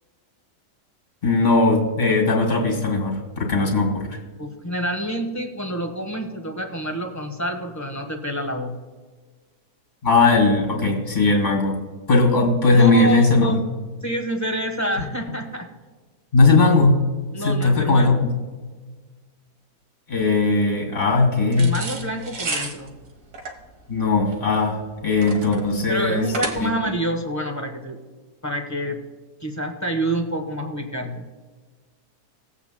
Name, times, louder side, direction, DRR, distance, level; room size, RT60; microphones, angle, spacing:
voice 1, 1.2-4.2 10.0-11.8 12.1-13.6 16.3-17.0 17.4-18.3 20.1-21.7 23.9-26.3 26.6-26.7, left 3 dB, 30° left, 0 dB, 2.3 m, -18 dB
voice 2, 4.4-8.7 12.7-13.6 14.0-15.7 17.3-18.2 21.6-22.9 25.9-28.0 28.4-29.0 29.4-31.2, equal, 10° left, 3 dB, 1.1 m, -27 dB
sound 1, 21.5-27.0, right 3 dB, 65° right, 1.7 m, -32 dB
20.5 x 8.2 x 2.2 m, 1.4 s
omnidirectional pair, 1.7 m